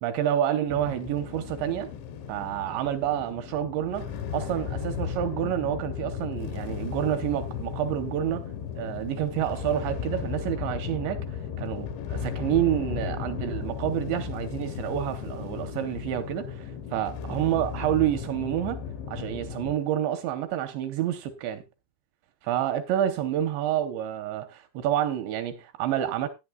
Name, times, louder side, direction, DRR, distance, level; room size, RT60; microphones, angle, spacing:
voice 1, 0.0-1.9 2.3-8.4 8.8-18.8 19.1-21.6 22.4-26.3, right 11 dB, 80° right, 2.6 m, -28 dB
sound 1, 0.7-19.7, left 7 dB, 70° left, 3.1 m, -35 dB
16.5 x 10.0 x 2.3 m
omnidirectional pair, 5.9 m